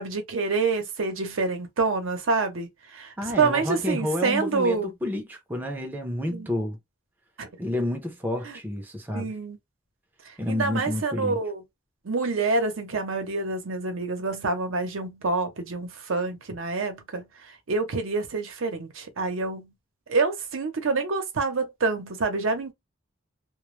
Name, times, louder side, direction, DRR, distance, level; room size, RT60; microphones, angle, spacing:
voice 1, 0.0-4.9 6.3-6.5 7.4-7.5 8.4-8.6 9.1-9.6 10.5-11.6 12.0-17.3 17.7-19.7 20.1-22.7, right 3 dB, 85° right, 0.7 m, -27 dB
voice 2, 3.2-6.8 7.6-9.3 10.4-11.4, left 1 dB, 10° right, 0.5 m, -30 dB
2.2 x 2.0 x 3.0 m
head